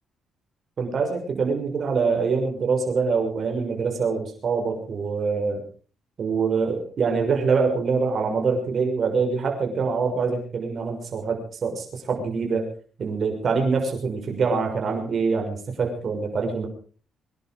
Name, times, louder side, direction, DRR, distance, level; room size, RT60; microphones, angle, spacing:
voice 1, 0.8-5.6 6.2-12.6 13.0-16.7, right 5 dB, 50° right, 3 dB, 6.2 m, -24 dB
24.5 x 11.0 x 5.2 m, 0.42 s
cardioid pair, 90°, 0 cm